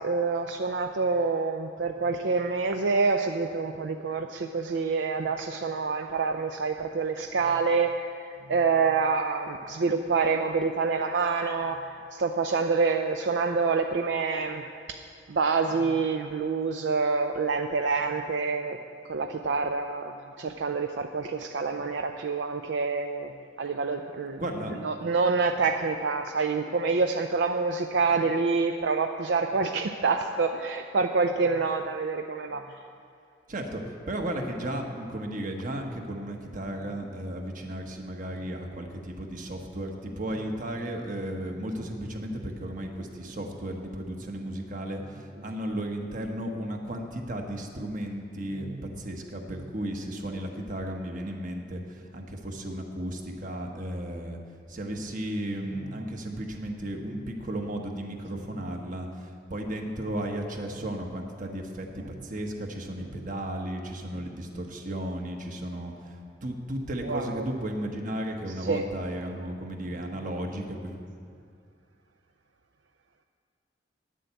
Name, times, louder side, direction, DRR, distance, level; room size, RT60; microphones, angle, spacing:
voice 1, 0.0-15.0 15.3-18.8 19.1-23.3 23.6-24.4 24.8-32.6 48.6-48.8 67.0-67.4 68.7-68.8, right 4 dB, 75° right, 5 dB, 0.5 m, -27 dB
voice 2, 24.4-24.7 33.5-33.8 34.1-48.7 49.0-54.4 54.7-66.2 66.4-71.0, right 1 dB, 50° right, 3 dB, 1.3 m, -34 dB
10.0 x 7.6 x 8.1 m, 2.3 s
head